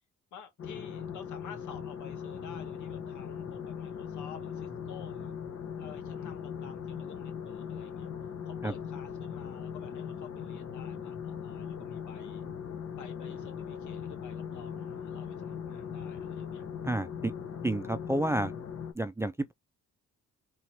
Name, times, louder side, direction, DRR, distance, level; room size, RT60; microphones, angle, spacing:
voice 1, 0.3-5.4 5.7-12.4 13.0-16.6, left 7 dB, 75° left, 1.6 m, -51 dB
sound 1, 0.6-18.9, left 7 dB, 50° left, 1.3 m, -39 dB
voice 2, 16.8-17.3 17.6-18.5 18.9-19.5, right 1 dB, 10° right, 0.4 m, -30 dB
3.7 x 2.9 x 4.6 m
cardioid pair, 90°, 30 cm